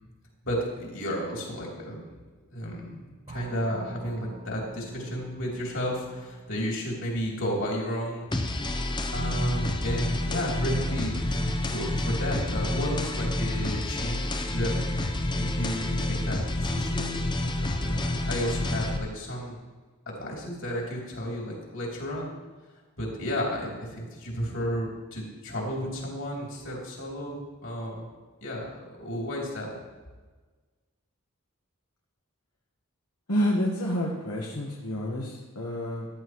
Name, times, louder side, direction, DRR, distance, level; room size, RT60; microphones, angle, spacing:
voice 1, 0.4-2.0 2.5-3.0 3.3-8.4 9.1-14.7 15.3-17.2 17.8-19.6 20.1-22.4 23.0-28.1 28.4-29.7, equal, 60° left, -2 dB, 3.3 m, -32 dB
sound 1, 3.3-9.6, right 2 dB, 25° right, 0.5 m, -46 dB
sound 2, 8.3-19.0, left 1 dB, 20° left, 0.7 m, -29 dB
voice 2, 33.3-36.1, equal, 80° left, -3 dB, 1.4 m, -29 dB
14.0 x 11.5 x 3.1 m, 1.3 s
head